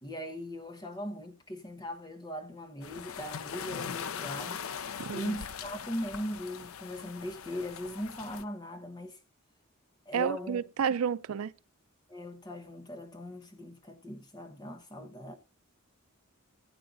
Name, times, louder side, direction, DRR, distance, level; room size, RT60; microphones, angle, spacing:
voice 1, 0.0-4.6 5.1-9.2 10.1-10.6 12.1-15.4, left 1 dB, 20° left, 1.2 m, -39 dB
sound 1, 2.8-8.4, left 7 dB, 80° left, 0.6 m, -41 dB
voice 2, 5.0-5.3 10.1-11.5, right 7 dB, 90° right, 0.4 m, -30 dB
15.5 x 8.7 x 2.6 m
head